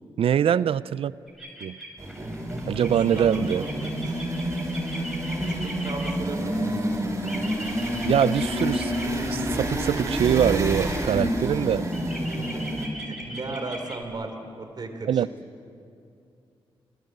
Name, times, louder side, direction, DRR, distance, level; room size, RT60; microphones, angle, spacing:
voice 1, 0.2-1.1 1.6-1.8 2.7-3.6 8.0-8.9 9.3-11.9 15.1-15.3, right 9 dB, 75° right, 0.5 m, -23 dB
sound 1, 1.3-6.1 7.2-9.0 11.9-14.0, right 1 dB, ahead, 6.2 m, -39 dB
sound 2, 2.0-12.9, equal, 30° right, 5.6 m, -28 dB
voice 2, 3.5-4.2 5.4-6.7 12.2-15.2, right 2 dB, 45° right, 4.1 m, -37 dB
29.5 x 19.0 x 7.9 m
cardioid pair, 85°, 10 cm